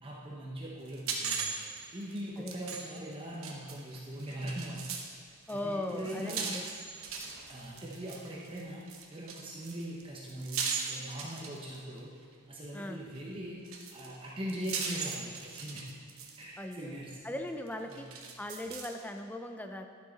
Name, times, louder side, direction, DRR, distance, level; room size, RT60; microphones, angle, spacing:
voice 1, 0.0-1.5 1.9-6.5 7.5-12.1 12.5-13.6 13.9-16.0 16.4-17.4 17.9-18.1, equal, 25° right, -4 dB, 0.9 m, -41 dB
sound 1, 0.9-5.1 5.5-12.0 13.1-13.2 13.6-16.4 16.7-16.8 17.7-19.0, right 5 dB, 75° right, 1.0 m, -39 dB
voice 2, 5.5-6.6 12.7-13.0 16.6-18.1 18.4-19.9, left 1 dB, 10° left, 5 dB, 0.4 m, -39 dB
11.5 x 6.3 x 4.0 m, 2.2 s
head